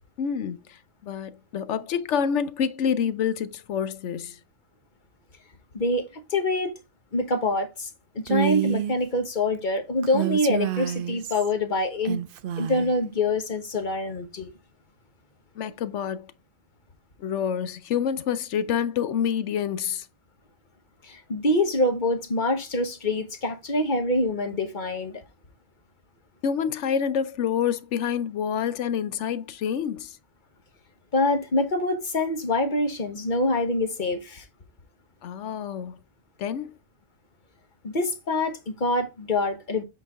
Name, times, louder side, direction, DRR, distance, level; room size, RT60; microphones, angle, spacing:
voice 1, 0.2-4.4 15.6-16.3 17.2-20.1 26.4-30.2 35.2-36.0 36.4-36.8, left 8 dB, 65° left, 1.0 m, -27 dB
voice 2, 5.7-6.7 7.1-7.9 8.1-12.2 12.6-14.5 21.0-25.2 31.1-34.4 37.8-39.8, left 2 dB, 40° left, 1.2 m, -25 dB
Female speech woman speaking, 8.3-9.0 10.0-11.5 12.0-12.9, right 12 dB, 60° right, 0.6 m, -28 dB
7.9 x 4.1 x 3.6 m
omnidirectional pair, 1.4 m